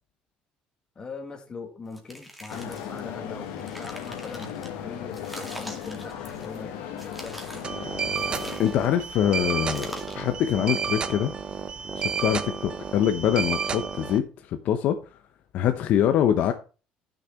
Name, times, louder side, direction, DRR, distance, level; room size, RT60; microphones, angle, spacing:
voice 1, 1.0-7.6, left 4 dB, 30° left, 2.3 m, -41 dB
sound 1, 1.9-3.0 3.4-4.7 5.1-6.6 7.0-7.7 8.1-9.0 9.6-10.3, equal, ahead, 2.2 m, -43 dB
sound 2, 2.5-8.6, left 9 dB, 90° left, 1.6 m, -37 dB
sound 3, 7.6-14.2, right 6 dB, 35° right, 0.9 m, -31 dB
voice 2, 8.6-11.3 11.9-15.0 15.5-16.5, left 10 dB, 65° left, 0.8 m, -24 dB
10.5 x 6.6 x 4.4 m
cardioid pair, 105°, 3 cm